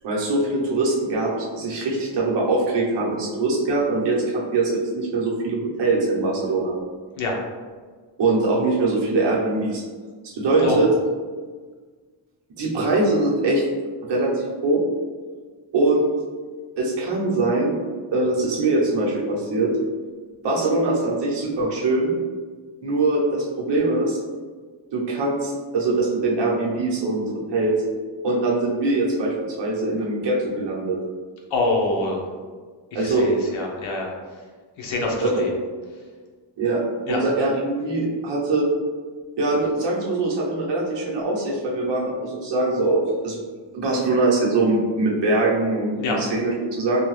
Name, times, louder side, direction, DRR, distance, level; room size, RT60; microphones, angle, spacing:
voice 1, 0.0-6.7 8.2-9.8 10.2-10.9 12.6-13.6 14.1-14.8 15.7-16.1 16.8-17.8 18.1-19.7 20.4-22.1 22.8-24.2 24.9-27.2 27.5-27.8 28.2-31.0 32.9-33.3 35.2-35.4 36.6-36.8 37.1-38.7 39.4-43.4 43.7-47.0, right 2 dB, 60° right, -3 dB, 0.8 m, -22 dB
voice 2, 31.5-32.2 33.0-34.1 34.8-35.5 37.1-37.2 46.0-46.2, left 2 dB, 75° left, -1 dB, 0.7 m, -25 dB
2.8 x 2.2 x 3.1 m, 1.5 s
wide cardioid pair, 140°, 46 cm